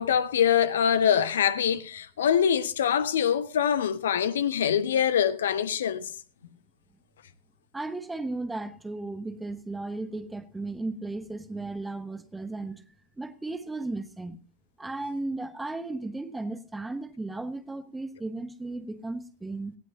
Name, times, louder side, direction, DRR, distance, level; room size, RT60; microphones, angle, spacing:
voice 1, 0.0-6.1, left 8 dB, 65° left, 1.1 m, -24 dB
voice 2, 7.7-12.8 13.2-14.4 14.8-19.8, right 2 dB, 10° right, 1.2 m, -35 dB
19.0 x 16.0 x 2.8 m
figure-of-eight pair, 90°, 0 cm